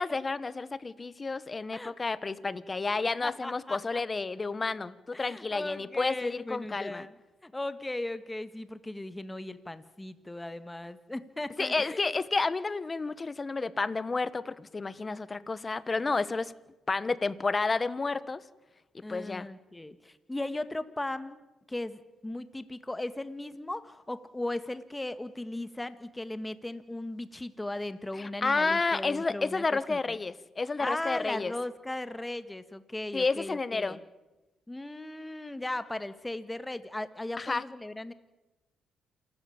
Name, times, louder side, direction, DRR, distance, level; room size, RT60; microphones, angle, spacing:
voice 1, 0.0-7.1 11.6-16.5 16.9-18.4 18.9-19.5 28.2-31.5 33.1-34.0 37.4-37.6, left 3 dB, 25° left, 16 dB, 1.2 m, -31 dB
voice 2, 3.2-3.8 5.1-7.1 7.4-12.1 19.0-21.4 21.7-29.6 29.9-30.2 30.8-34.0 34.7-38.1, left 1 dB, 10° left, 12 dB, 1.6 m, -37 dB
28.0 x 13.5 x 8.7 m, 1.0 s
cardioid pair, 90°, 0 cm